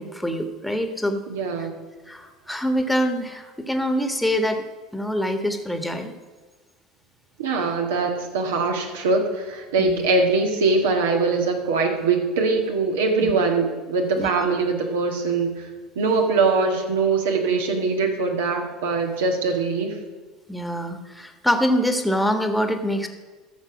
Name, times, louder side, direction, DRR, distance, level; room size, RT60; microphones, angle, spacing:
voice 1, 0.0-1.2 2.1-4.6 4.9-6.1 9.8-10.1 13.2-13.3 14.2-14.5 20.5-23.1, equal, 5° left, 6 dB, 1.4 m, -25 dB
voice 2, 1.3-1.7 7.4-15.7 15.9-20.0, right 4 dB, 80° right, 2 dB, 1.7 m, -22 dB
12.5 x 6.6 x 5.9 m, 1.3 s
hypercardioid pair, 70°, 0 cm